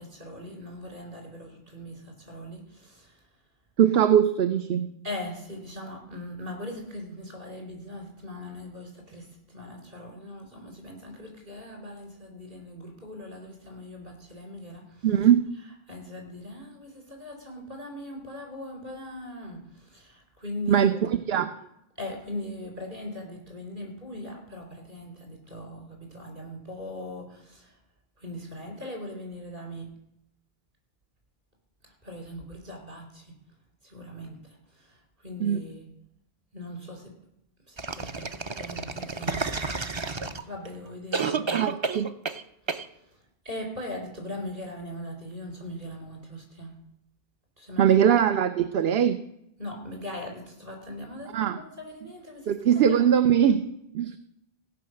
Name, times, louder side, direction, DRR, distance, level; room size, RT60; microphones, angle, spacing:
voice 1, 0.0-3.3 5.0-15.3 15.9-21.1 22.0-27.8 28.2-29.9 31.8-33.4 33.8-35.9 36.5-37.1 37.7-41.7 42.6-46.8 47.6-48.1 49.6-53.1, left 1 dB, 55° right, 2 dB, 4.2 m, -40 dB
voice 2, 3.8-4.9 15.0-15.4 20.7-20.9 21.3-21.5 35.4-35.6 41.5-42.1 47.8-49.2 51.3-51.6 52.5-53.6 53.9-54.2, right 9 dB, 75° right, 9 dB, 0.9 m, -21 dB
sound 1, 37.8-40.7 41.1-42.4 42.7-42.8, right 4 dB, 35° right, 0.6 m, -30 dB
16.5 x 5.6 x 7.7 m, 0.79 s
omnidirectional pair, 1.0 m